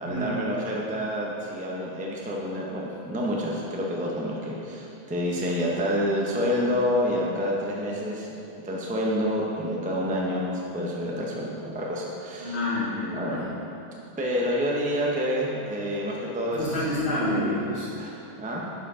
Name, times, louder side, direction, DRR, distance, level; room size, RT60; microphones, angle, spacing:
voice 1, 0.0-8.3 8.6-12.6 13.1-13.4 14.2-16.9 18.0-18.7, equal, 10° right, -3 dB, 0.4 m, -28 dB
voice 2, 12.4-13.5 16.5-17.9, left 1 dB, 40° left, -8 dB, 1.6 m, -28 dB
10.5 x 4.8 x 3.7 m, 2.9 s
omnidirectional pair, 1.7 m